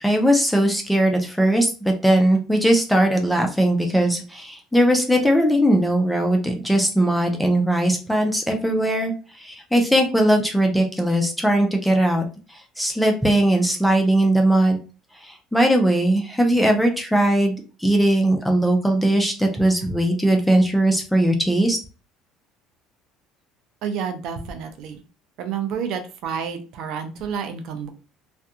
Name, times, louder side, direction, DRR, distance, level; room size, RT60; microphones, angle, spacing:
voice 1, 0.0-9.1 9.4-12.2 12.8-14.8 15.3-17.6 17.8-21.8, right 1 dB, ahead, 2 dB, 0.4 m, -19 dB
voice 2, 23.8-25.0 25.4-27.9, right 7 dB, 60° right, 7 dB, 0.5 m, -29 dB
2.4 x 2.2 x 2.6 m, 0.35 s
cardioid pair, 150°, 0 cm